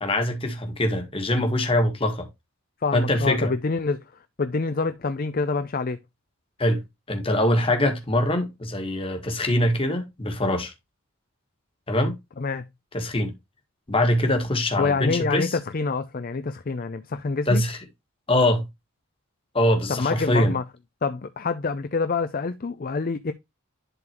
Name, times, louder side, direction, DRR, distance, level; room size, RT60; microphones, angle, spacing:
voice 1, 0.0-2.3 2.9-3.5 6.6-6.8 7.1-10.7 11.9-12.1 12.9-13.3 13.9-15.5 17.5-17.8 18.3-18.6 19.5-20.5, left 1 dB, 25° left, 1.5 m, -23 dB
voice 2, 2.8-4.0 4.4-6.0 12.4-12.7 14.8-17.6 19.9-20.6 21.0-23.3, left 4 dB, 40° left, 0.5 m, -26 dB
11.0 x 3.9 x 2.9 m
head